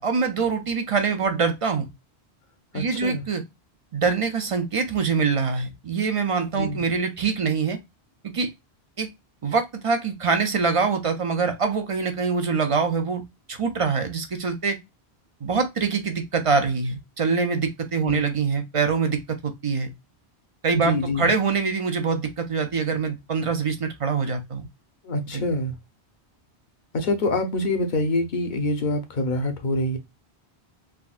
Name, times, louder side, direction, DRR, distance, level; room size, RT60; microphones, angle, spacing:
voice 1, 0.0-1.9 2.7-3.4 3.9-7.8 8.3-8.5 9.0-9.1 9.4-13.2 13.5-14.8 15.4-19.9 20.6-24.7 25.3-25.4, right 5 dB, 45° right, 0.5 m, -24 dB
voice 2, 2.7-3.2 6.5-6.8 18.0-18.2 20.7-21.3 25.0-25.7 26.9-30.0, left 1 dB, 50° left, 0.8 m, -25 dB
3.6 x 2.2 x 2.3 m
omnidirectional pair, 1.1 m